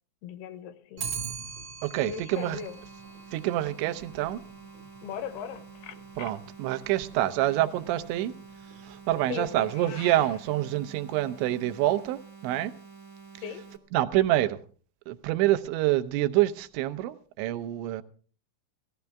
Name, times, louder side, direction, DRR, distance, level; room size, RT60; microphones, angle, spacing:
voice 1, 0.2-1.1 2.0-2.8 5.0-6.3 9.3-9.9 13.4-13.6, left 8 dB, 75° left, 2.7 m, -39 dB
Clock, 1.0-10.3, right 6 dB, 70° right, 1.1 m, -44 dB
voice 2, 1.8-2.6 3.3-4.4 6.2-8.3 8.8-12.7 13.9-14.6 15.1-18.0, right 14 dB, 90° right, 3.2 m, -27 dB
sound 1, 2.3-13.8, right 5 dB, 20° right, 0.8 m, -49 dB
Meow, 9.6-10.4, left 6 dB, 90° left, 4.6 m, -44 dB
17.5 x 15.5 x 3.5 m
omnidirectional pair, 5.1 m